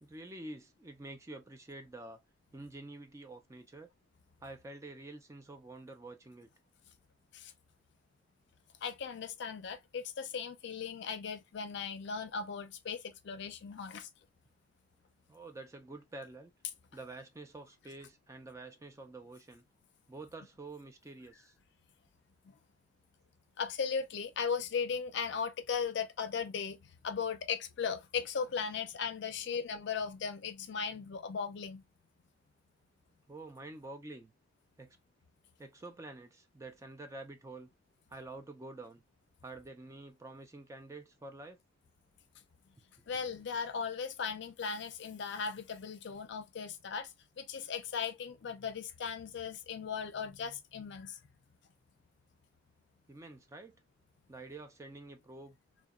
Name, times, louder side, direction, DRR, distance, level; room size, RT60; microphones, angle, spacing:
voice 1, 0.0-2.2 2.5-3.9 4.4-6.5 15.3-16.5 16.9-19.6 20.1-21.5 29.5-29.6 33.3-34.3 34.8-35.0 35.6-37.7 38.1-39.0 39.4-41.6 53.1-53.8 54.3-55.6, right 2 dB, 15° right, 0.4 m, -48 dB
voice 2, 8.8-14.1 22.4-22.5 23.6-31.8 43.1-51.2, left 6 dB, 65° left, 0.4 m, -37 dB
2.8 x 2.1 x 2.3 m
head